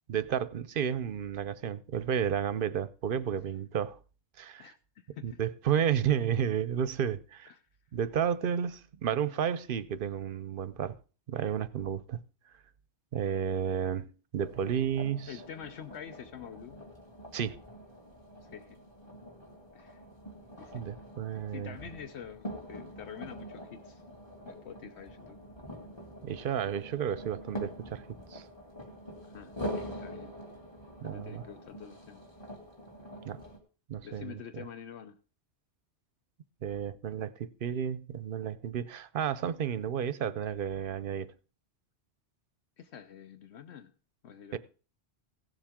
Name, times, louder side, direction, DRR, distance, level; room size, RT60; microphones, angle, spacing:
voice 1, 0.1-4.0 4.4-4.7 5.2-7.5 7.9-11.0 11.3-12.2 13.1-15.3 17.3-17.6 20.7-21.8 26.2-28.0 28.3-28.4 31.0-31.4 33.2-33.4 33.9-34.6 36.6-41.3 44.5-44.6, right 8 dB, 55° right, 0.8 m, -32 dB
voice 2, 4.6-5.4 7.5-7.6 15.3-16.8 18.4-18.8 19.7-20.0 20.6-20.9 21.5-24.0 24.4-25.4 29.2-30.4 31.0-32.2 34.0-35.2 42.8-43.9 44.2-44.6, left 8 dB, 75° left, 1.0 m, -47 dB
sound 1, 14.4-33.6, equal, 25° left, 2.1 m, -45 dB
16.0 x 7.3 x 3.6 m
omnidirectional pair, 1.1 m